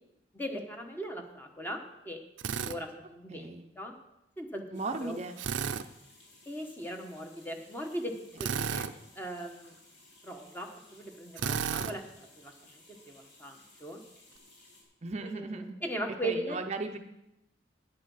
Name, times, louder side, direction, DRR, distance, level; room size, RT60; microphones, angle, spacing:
voice 1, 0.3-2.2 2.7-3.9 4.4-4.6 5.0-5.2 6.5-8.1 8.4-8.9 9.2-9.7 10.2-12.0 12.4-12.5 13.1-14.0 15.2-16.6, right 1 dB, 10° left, 3 dB, 1.2 m, -38 dB
Drill, 2.4-2.8 5.4-5.9 8.4-8.9 11.4-11.9, right 6 dB, 90° right, 0.5 m, -32 dB
voice 2, 3.3-3.7 4.7-5.4 15.0-15.8 16.2-17.0, right 3 dB, 35° right, 6 dB, 0.6 m, -37 dB
sound 1, 4.7-14.8, left 2 dB, 70° left, 3.2 m, -58 dB
9.8 x 9.4 x 5.5 m, 0.88 s
head